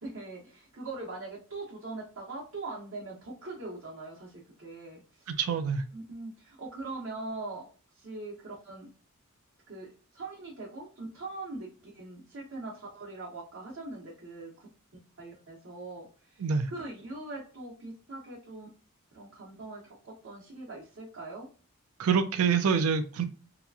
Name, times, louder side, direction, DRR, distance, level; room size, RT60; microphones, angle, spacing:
voice 1, 0.0-5.3 5.9-7.6 7.9-8.9 9.7-9.9 10.1-14.7 15.2-18.7 19.1-21.5, right 2 dB, 65° right, -5 dB, 0.9 m, -42 dB
voice 2, 5.3-5.8 16.4-16.7 22.0-23.2, right 6 dB, 85° right, 8 dB, 0.4 m, -26 dB
2.9 x 2.4 x 2.3 m, 0.37 s
head